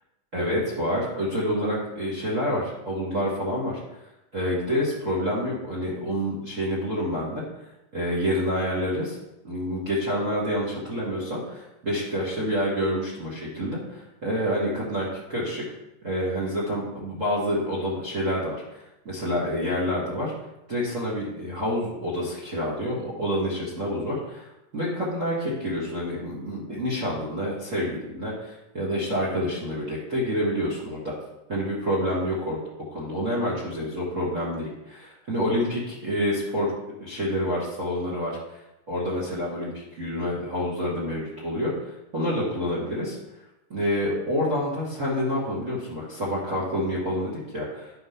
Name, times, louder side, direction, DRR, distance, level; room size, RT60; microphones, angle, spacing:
voice 1, 0.3-3.8 4.3-7.4 7.9-9.2 9.4-15.6 16.0-18.8 19.0-20.3 20.7-24.5 24.7-31.1 31.5-32.6 32.9-36.7 37.0-38.6 38.9-43.2 43.7-47.9, equal, 45° right, -5 dB, 1.0 m, -28 dB
9.6 x 4.5 x 5.7 m, 0.92 s
omnidirectional pair, 4.0 m